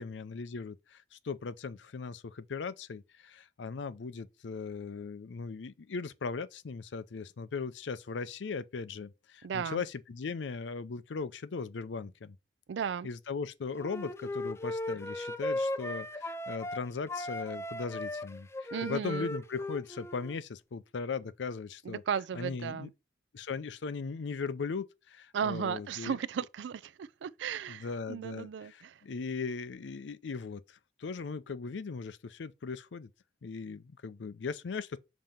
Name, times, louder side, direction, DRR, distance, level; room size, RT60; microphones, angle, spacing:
voice 1, 0.0-12.4 13.0-22.0 22.3-22.9 23.3-26.2 27.7-33.1 33.4-35.0, left 4 dB, 85° left, 0.5 m, -38 dB
voice 2, 9.4-9.8 12.7-13.1 18.7-19.3 21.9-22.9 25.3-29.0, right 7 dB, 80° right, 0.4 m, -35 dB
Wind instrument woodwind instrument, 13.8-16.8 17.1-20.4, left 1 dB, 15° left, 0.4 m, -37 dB
7.3 x 2.9 x 5.1 m
head